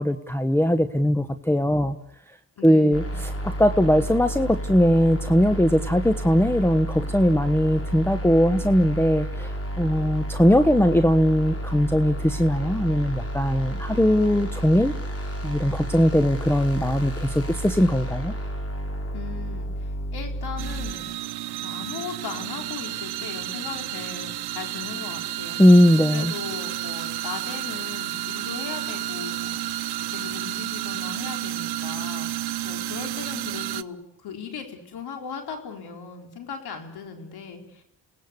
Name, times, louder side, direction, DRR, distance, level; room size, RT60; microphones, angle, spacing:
voice 1, 0.0-2.0 2.6-14.9 15.4-18.3 25.6-26.3, equal, 5° left, 10 dB, 1.1 m, -20 dB
voice 2, 2.6-3.2 19.1-21.1 21.6-25.6 26.1-32.3 32.6-37.8, left 6 dB, 80° left, 3 dB, 4.4 m, -38 dB
sound 1, 2.9-20.9, equal, 35° left, 5.4 m, -31 dB
sound 2, 20.6-33.8, right 14 dB, 80° right, 0.9 m, -31 dB
29.0 x 18.0 x 8.3 m, 0.80 s
cardioid pair, 60°, 38 cm